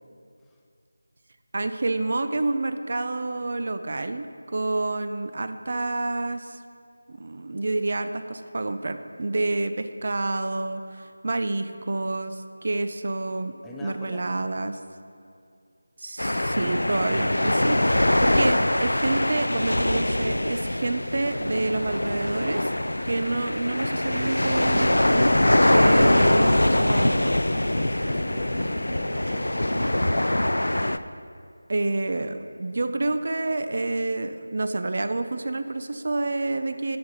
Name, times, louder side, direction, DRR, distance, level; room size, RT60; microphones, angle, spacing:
voice 1, 1.5-6.6 7.1-13.5 13.8-14.8 16.0-22.7 23.0-27.3 31.7-37.0, right 2 dB, 50° right, 9 dB, 0.4 m, -28 dB
voice 2, 13.6-14.3 27.7-30.0, left 2 dB, 5° left, -2 dB, 0.4 m, -43 dB
sound 1, 16.2-31.0, left 1 dB, 80° left, 0.3 m, -23 dB
9.0 x 7.7 x 3.9 m, 2.4 s
figure-of-eight pair, 165°, 0 cm